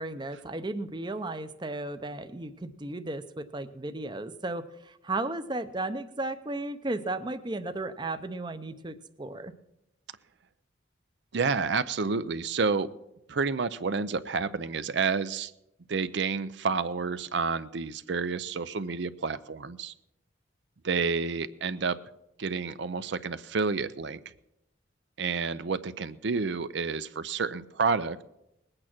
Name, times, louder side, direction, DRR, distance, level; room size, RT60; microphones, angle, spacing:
voice 1, 0.0-9.5, right 2 dB, 25° right, 10 dB, 0.7 m, -35 dB
voice 2, 11.3-12.9 13.3-15.5 15.9-19.9 20.8-22.0 22.4-24.2 25.2-28.2, right 4 dB, 65° right, 13 dB, 0.5 m, -29 dB
20.0 x 8.8 x 6.0 m, 0.85 s
head